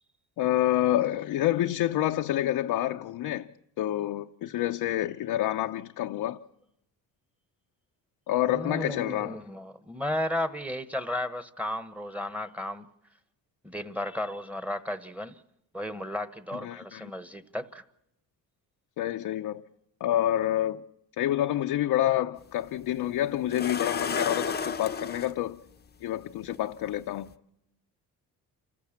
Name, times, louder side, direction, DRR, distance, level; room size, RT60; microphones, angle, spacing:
voice 1, 0.4-3.5 3.8-6.4 8.3-9.4 16.6-17.1 19.0-19.6 20.0-20.8 21.2-25.6 26.0-27.3, left 13 dB, 65° left, 0.7 m, -28 dB
voice 2, 8.5-12.9 13.6-15.4 15.7-17.8, left 1 dB, 5° right, 1.2 m, -34 dB
sound 1, 22.4-22.5 23.5-25.3 26.5-26.6 27.2-27.3, left 5 dB, 25° left, 0.8 m, -32 dB
27.5 x 15.0 x 7.4 m
cardioid pair, 90°, 38 cm